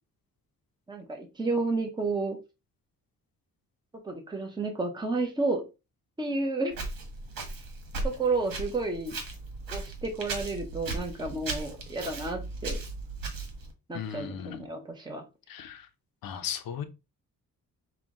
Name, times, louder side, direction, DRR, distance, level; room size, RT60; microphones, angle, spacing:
voice 1, 0.9-2.4 4.0-5.6 6.2-6.8 8.0-9.1 9.7-12.8 13.9-15.2, right 3 dB, 10° right, 0.9 m, -31 dB
Walk footsteps, 6.7-13.7, right 2 dB, 75° right, 1.5 m, -37 dB
voice 2, 13.9-14.7 15.5-15.9 16.2-16.8, left 9 dB, 85° left, 0.8 m, -36 dB
5.9 x 2.4 x 3.6 m
wide cardioid pair, 140°, 34 cm